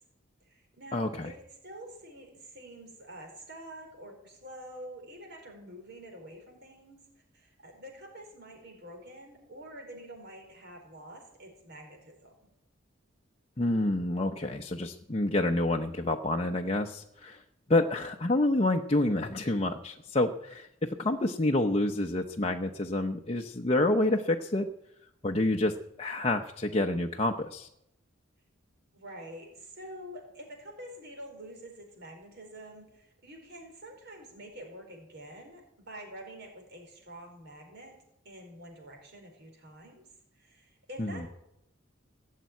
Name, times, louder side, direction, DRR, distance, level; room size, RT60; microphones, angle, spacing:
voice 1, 0.4-7.0 7.3-12.5 20.8-21.2 28.9-37.9 38.2-40.0 40.3-41.3, right 1 dB, 60° right, 2 dB, 4.7 m, -47 dB
voice 2, 0.9-1.3 13.6-17.4 17.7-24.7 25.2-27.7 41.0-41.2, left 2 dB, 30° left, 3 dB, 0.7 m, -28 dB
17.0 x 7.5 x 9.3 m, 0.82 s
head